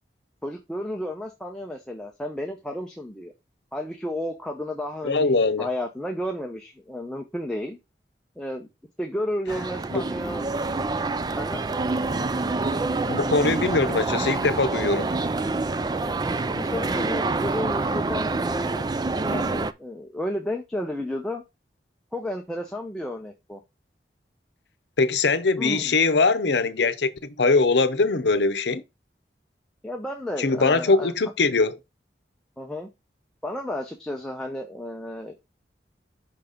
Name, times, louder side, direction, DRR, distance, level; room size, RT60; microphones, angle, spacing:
voice 1, 0.4-3.3 3.7-7.8 8.4-8.7 9.0-10.5 11.4-11.6 16.4-18.9 19.2-21.4 22.1-23.6 25.6-25.9 29.8-31.1 32.6-32.9 33.4-35.4, left 1 dB, 5° left, 0.7 m, -32 dB
voice 2, 5.0-5.7 9.9-10.0 13.1-15.2 25.0-27.1 27.4-28.8 30.4-31.8, left 3 dB, 80° left, 0.7 m, -22 dB
sound 1, 9.5-19.7, right 3 dB, 20° right, 0.3 m, -27 dB
5.8 x 4.1 x 5.0 m
head